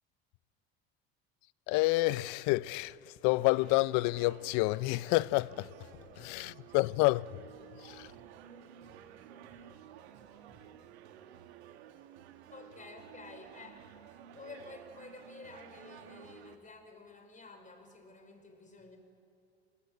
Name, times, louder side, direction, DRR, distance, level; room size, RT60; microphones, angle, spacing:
voice 1, 1.7-7.4 7.7-8.1, left 21 dB, 65° left, 0.6 m, -29 dB
sound 1, 3.4-16.6, right 9 dB, 80° right, 1.5 m, -53 dB
Drum, 5.5-5.6 6.1-6.4 6.8-6.9 7.5-7.7 8.1-8.3 8.8-9.1 9.5-9.6 10.1-10.7, right 5 dB, 55° right, 6.3 m, -63 dB
voice 2, 12.5-19.0, left 3 dB, 25° left, 5.4 m, -51 dB
24.5 x 19.5 x 9.5 m
supercardioid pair, 90°, 32 cm